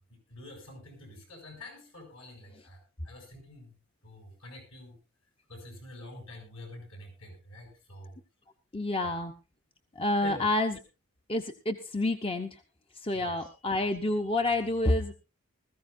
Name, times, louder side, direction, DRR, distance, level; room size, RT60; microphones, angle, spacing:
voice 1, 0.3-2.8 3.0-3.7 4.0-5.0 5.5-8.1 10.2-10.5 13.1-13.5, left 2 dB, 65° left, 4 dB, 7.2 m, -46 dB
voice 2, 8.7-9.3 10.0-10.8 11.3-12.6 13.0-15.1, left 2 dB, 25° left, 6 dB, 0.8 m, -28 dB
20.0 x 14.5 x 2.6 m, 0.28 s
head